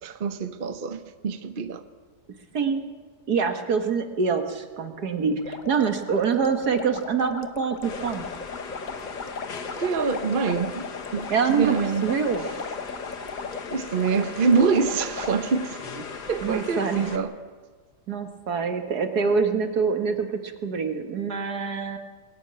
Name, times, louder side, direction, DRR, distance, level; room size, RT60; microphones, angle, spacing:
voice 1, 0.0-1.8 9.8-12.0 12.4-12.5 13.7-15.8 16.3-17.4, right 5 dB, 40° right, 0.9 m, -25 dB
voice 2, 2.5-2.9 3.3-8.3 11.3-11.8 12.0-12.5 16.4-17.0 18.1-22.0, right 5 dB, 70° right, 2.1 m, -25 dB
sound 1, 5.4-15.3, left 4 dB, 35° left, 1.0 m, -37 dB
sound 2, 7.8-17.2, left 5 dB, 85° left, 2.2 m, -38 dB
22.0 x 16.5 x 8.8 m
omnidirectional pair, 1.7 m